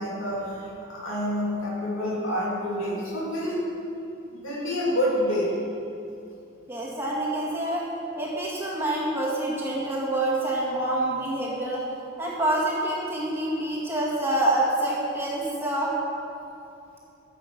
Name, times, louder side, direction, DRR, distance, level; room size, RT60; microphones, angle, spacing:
voice 1, 0.0-3.6 4.3-5.6, equal, 65° left, -5 dB, 3.1 m, -28 dB
voice 2, 6.7-7.8 8.2-11.8 12.2-15.9, right 1 dB, 10° right, -6 dB, 2.1 m, -27 dB
14.0 x 7.7 x 6.1 m, 2.7 s
head